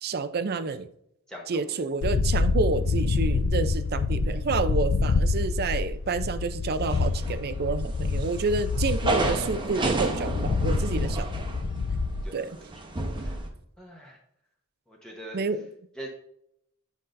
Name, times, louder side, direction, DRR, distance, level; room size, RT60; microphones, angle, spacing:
voice 1, 0.0-0.9 1.5-11.3 12.3-12.6 15.3-15.7, right 4 dB, 45° right, 0.5 m, -29 dB
voice 2, 1.3-1.8 10.9-11.0 12.2-12.4 13.1-13.4 13.8-14.2 14.9-15.4 16.0-16.1, right 1 dB, 5° left, 0.9 m, -42 dB
sound 1, 2.0-12.2, left 3 dB, 55° left, 0.4 m, -27 dB
sound 2, 6.9-7.6 8.0-13.5, right 2 dB, 20° right, 0.9 m, -31 dB
9.7 x 5.4 x 2.5 m
head